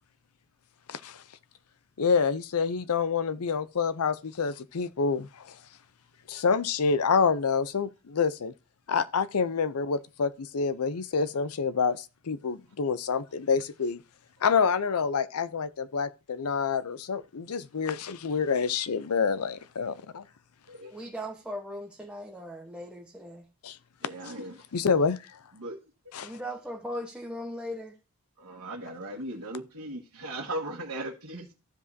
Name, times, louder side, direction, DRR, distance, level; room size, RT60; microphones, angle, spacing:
voice 1, 0.9-1.2 2.0-5.6 6.3-8.5 8.9-14.0 14.4-20.2 23.6-23.8 24.2-24.3 24.7-25.3 26.1-26.3, left 5 dB, 80° left, 0.6 m, -27 dB
voice 2, 20.9-23.5 26.2-27.9, equal, 5° right, 1.1 m, -38 dB
voice 3, 24.0-24.5 25.6-25.8 28.4-31.5, right 1 dB, 80° right, 1.5 m, -37 dB
14.5 x 5.1 x 2.7 m
head